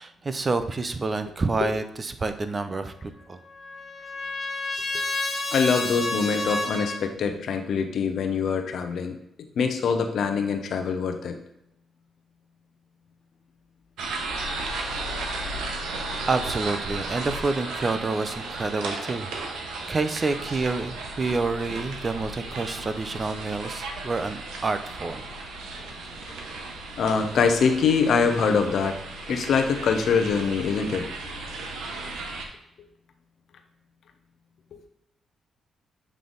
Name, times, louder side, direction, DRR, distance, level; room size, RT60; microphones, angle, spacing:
voice 1, 0.0-3.4 16.3-25.2, right 3 dB, 35° right, 9 dB, 0.5 m, -28 dB
Trumpet, 3.1-7.0, left 2 dB, 25° left, 1.2 m, -30 dB
voice 2, 5.5-9.2 9.6-11.4 27.0-29.0 29.3-31.1, left 5 dB, 70° left, 6 dB, 0.7 m, -24 dB
sound 1, 14.0-32.4, right 3 dB, 85° right, 0.9 m, -35 dB
7.5 x 3.4 x 3.9 m, 0.80 s
cardioid pair, 75°, 0 cm